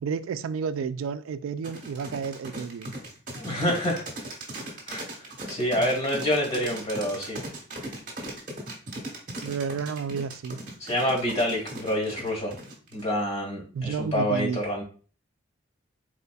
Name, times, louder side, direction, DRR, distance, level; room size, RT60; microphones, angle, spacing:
voice 1, 0.0-3.0 5.8-5.9 9.4-10.6 13.7-14.6, right 6 dB, 85° right, 0.3 m, -31 dB
sound 1, 1.6-13.1, right 1 dB, 40° right, 1.2 m, -38 dB
voice 2, 3.3-4.0 4.9-5.0 5.5-7.4 10.8-12.5 12.9-14.8, equal, 35° left, 1.9 m, -27 dB
4.2 x 4.0 x 2.2 m
head